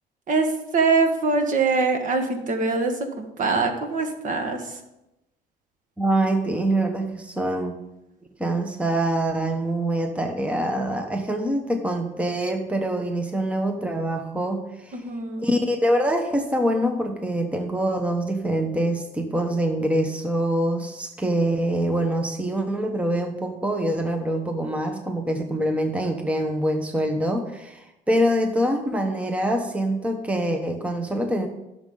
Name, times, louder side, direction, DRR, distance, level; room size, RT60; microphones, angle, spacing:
voice 1, 0.3-4.7 14.9-15.5, right 4 dB, 50° right, 5 dB, 1.7 m, -23 dB
voice 2, 6.0-7.8 8.4-15.0 15.4-31.5, right 1 dB, 5° right, 5 dB, 1.0 m, -25 dB
15.0 x 6.5 x 3.9 m, 0.93 s
cardioid pair, 110°, 17 cm